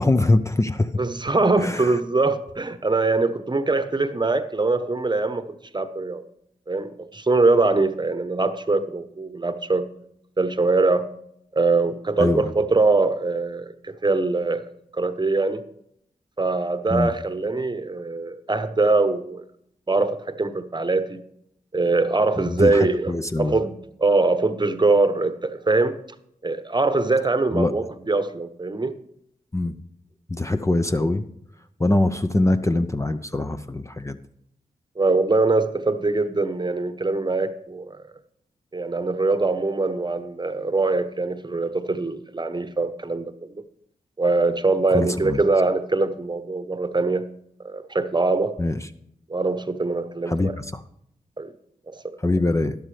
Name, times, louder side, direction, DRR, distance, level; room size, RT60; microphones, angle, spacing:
voice 1, 0.0-0.9 1.6-2.0 12.2-12.4 16.9-17.1 22.4-23.6 27.5-27.7 29.5-29.8 30.3-31.2 31.8-34.2 44.9-45.4 48.6-48.8 50.3-50.8 52.2-52.8, left 2 dB, 20° left, 9 dB, 0.6 m, -23 dB
voice 2, 1.0-5.5 5.7-6.2 6.7-9.9 10.4-11.1 11.5-14.6 14.9-15.6 16.4-19.4 19.9-21.2 21.7-23.1 23.4-26.0 26.4-28.9 35.0-38.0 38.7-43.6 44.2-47.2 47.6-48.5 49.3-50.5 51.4-51.5 51.9-52.0, right 3 dB, 30° right, 11 dB, 1.0 m, -22 dB
12.0 x 11.5 x 3.3 m, 0.73 s
supercardioid pair, 40°, 15 cm